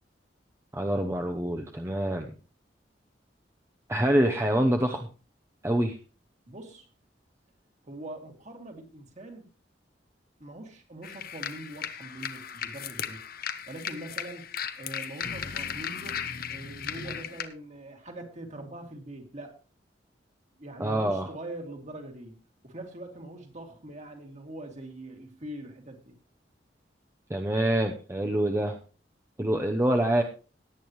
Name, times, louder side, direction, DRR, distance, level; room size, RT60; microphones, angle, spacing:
voice 1, 0.7-2.3 3.9-5.1 5.6-6.0 20.8-21.3 27.3-28.8 29.4-30.2, right 1 dB, 15° right, 3 dB, 0.8 m, -26 dB
voice 2, 6.5-6.9 7.9-9.5 10.4-13.2 13.7-16.2 16.5-19.6 20.6-26.1, right 1 dB, 40° right, 2 dB, 2.6 m, -43 dB
sound 1, 11.0-17.5, left 8 dB, 55° left, 1.0 m, -36 dB
18.0 x 9.0 x 3.2 m, 0.36 s
head